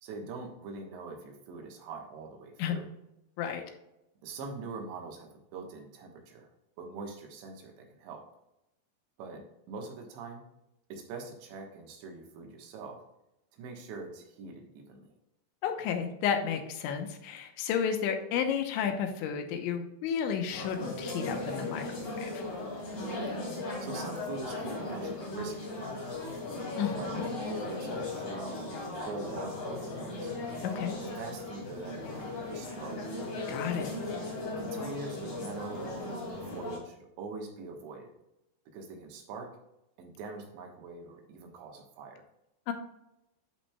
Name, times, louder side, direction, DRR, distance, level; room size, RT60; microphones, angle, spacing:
voice 1, 0.0-2.9 4.2-6.5 6.8-8.3 9.2-10.5 10.9-13.0 13.5-15.1 23.3-26.3 27.0-27.2 27.7-30.3 31.0-33.0 34.6-38.1 38.7-39.6 40.0-42.3, right 4 dB, 75° right, 2 dB, 3.6 m, -43 dB
voice 2, 15.6-22.4 26.8-27.3 30.6-30.9 33.5-33.9 42.7-42.8, left 7 dB, 85° left, 5 dB, 3.3 m, -32 dB
sound 1, 20.5-36.8, left 2 dB, 45° left, 2.5 m, -37 dB
12.0 x 5.4 x 2.3 m, 0.87 s
omnidirectional pair, 5.2 m